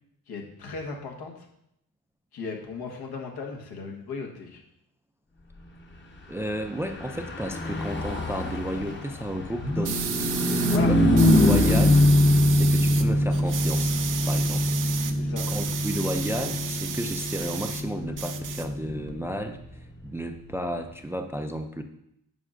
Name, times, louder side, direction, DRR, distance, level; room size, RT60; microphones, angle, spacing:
voice 1, 0.3-1.5 2.3-4.6 10.6-10.9 15.2-15.5, left 4 dB, 80° left, 1 dB, 1.4 m, -36 dB
voice 2, 6.3-10.1 10.9-11.0 11.3-12.0 12.5-13.9 14.2-14.8 15.5-19.6 20.0-21.8, equal, 5° right, 6 dB, 0.3 m, -32 dB
Car passing by / Truck, 6.8-20.5, left 1 dB, 30° left, 1.0 m, -24 dB
sound 1, 9.8-10.8 11.2-13.0 13.3-17.8 18.1-19.1, right 8 dB, 55° right, 0.6 m, -33 dB
9.1 x 5.4 x 2.5 m, 0.77 s
cardioid pair, 120°, 37 cm